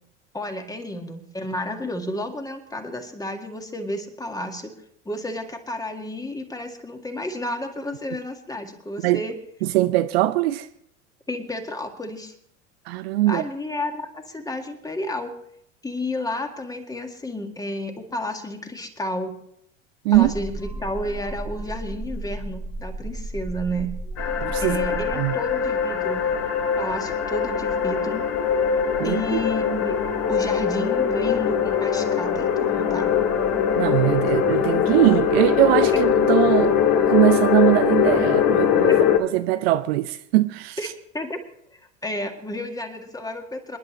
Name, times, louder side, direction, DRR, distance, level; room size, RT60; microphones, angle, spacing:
voice 1, 0.3-4.7 5.1-9.3 11.3-12.3 13.3-15.3 15.8-19.3 20.1-23.9 24.6-26.2 26.8-28.2 29.0-30.0 30.3-33.1 40.8-40.9 41.1-41.4 41.7-43.8, left 1 dB, 10° left, 2.0 m, -31 dB
voice 2, 9.6-10.7 12.9-13.5 20.0-20.3 24.4-25.4 29.0-29.4 33.8-36.8 37.1-38.9 39.2-40.8, right 16 dB, 55° right, 0.6 m, -21 dB
sound 1, 20.1-25.1, right 2 dB, 5° right, 0.7 m, -34 dB
sound 2, 24.2-39.2, left 8 dB, 40° left, 1.8 m, -22 dB
28.0 x 10.5 x 3.2 m
figure-of-eight pair, 80°, 37 cm